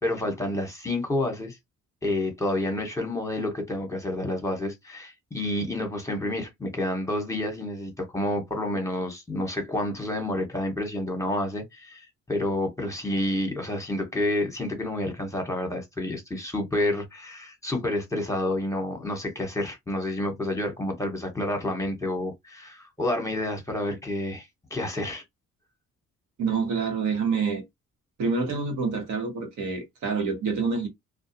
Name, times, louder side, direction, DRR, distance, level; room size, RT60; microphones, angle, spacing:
voice 1, 0.0-1.6 2.0-25.2, left 1 dB, 10° left, 1.1 m, -29 dB
voice 2, 26.4-27.6 28.2-30.9, right 5 dB, 70° right, 1.2 m, -27 dB
2.3 x 2.3 x 2.8 m
cardioid pair, 90°, 30 cm